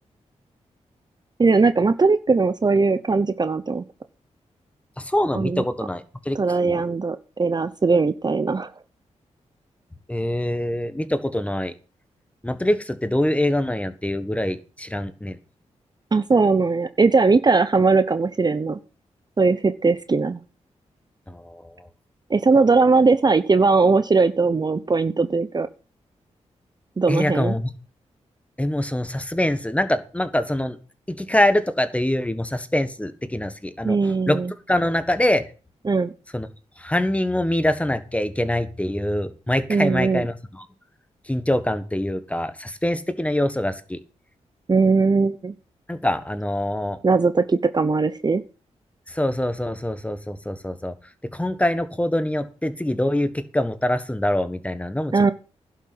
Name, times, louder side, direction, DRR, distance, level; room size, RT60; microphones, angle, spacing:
voice 1, 1.4-3.8 5.3-5.6 6.3-8.7 16.1-18.8 19.4-20.4 22.3-25.7 27.0-27.6 33.8-34.5 35.8-36.1 39.7-40.3 44.7-45.5 47.0-48.4 55.1-55.3, right 4 dB, 35° right, 12 dB, 0.8 m, -19 dB
voice 2, 5.0-6.8 10.1-11.7 12.4-15.4 21.3-21.6 27.1-27.7 28.6-30.8 31.1-34.0 34.3-34.4 34.7-35.4 36.3-36.5 36.8-40.6 41.3-44.0 45.9-47.0 49.1-50.9 51.3-55.1, left 1 dB, 10° left, 11 dB, 1.5 m, -24 dB
11.5 x 6.6 x 7.8 m, 0.35 s
cardioid pair, 75°, 12 cm